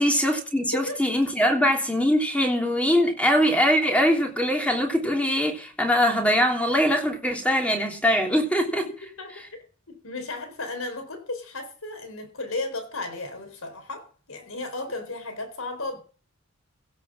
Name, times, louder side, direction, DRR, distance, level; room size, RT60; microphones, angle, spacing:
voice 1, 0.0-8.9, equal, 5° left, 3.1 m, -22 dB
voice 2, 9.9-16.0, left 2 dB, 70° left, 3.9 m, -34 dB
16.0 x 6.7 x 7.3 m
head